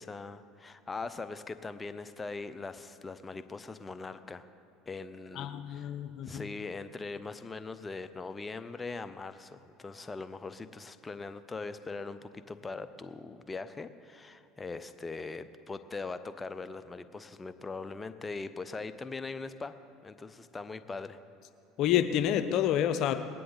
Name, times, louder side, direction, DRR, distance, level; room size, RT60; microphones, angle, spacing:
voice 1, 0.0-4.5 4.9-6.0 6.2-19.7 20.0-21.2, left 3 dB, 20° left, 11 dB, 0.7 m, -41 dB
voice 2, 5.4-6.4 21.8-23.2, left 10 dB, 55° left, 10 dB, 0.8 m, -28 dB
20.5 x 10.0 x 4.0 m, 2.8 s
hypercardioid pair, 75°, 0 cm